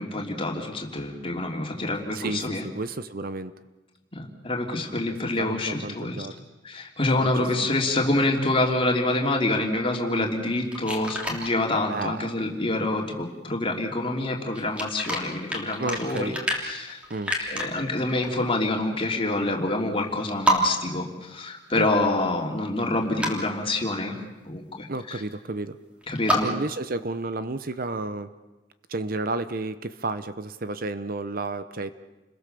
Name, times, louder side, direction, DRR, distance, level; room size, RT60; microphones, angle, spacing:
voice 1, 0.0-2.6 4.1-6.3 6.6-16.3 16.6-17.0 17.4-24.2 24.5-25.2 26.1-26.5, left 2 dB, 30° left, 1 dB, 3.3 m, -27 dB
voice 2, 2.1-3.5 5.1-6.3 7.2-7.7 10.1-10.3 11.9-12.3 15.8-16.4 17.1-17.3 21.7-21.9 24.9-25.8 26.4-28.3 28.9-31.9, right 2 dB, 50° right, 12 dB, 0.8 m, -32 dB
sound 1, 10.5-11.5 14.5-17.6 18.1-18.3 18.6-18.7 19.8-19.9 20.1-20.2 20.4-20.6 22.8-23.3 26.0-26.4, equal, 5° right, 3.3 m, -27 dB
29.5 x 21.5 x 6.9 m, 1.1 s
head